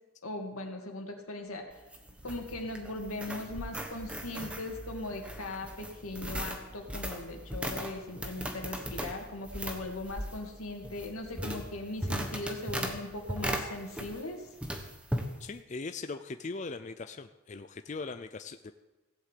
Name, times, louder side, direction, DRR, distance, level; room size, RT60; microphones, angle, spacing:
voice 1, 0.2-1.7 2.2-14.5, left 2 dB, 90° left, 3 dB, 2.5 m, -39 dB
sound 1, 1.5-12.1, equal, 45° right, 6.9 m, -53 dB
sound 2, 1.7-14.3 14.6-15.3, equal, 5° right, 1.2 m, -38 dB
voice 2, 15.1-18.7, left 3 dB, 35° left, 9 dB, 0.4 m, -40 dB
16.5 x 7.8 x 8.5 m, 1.1 s
head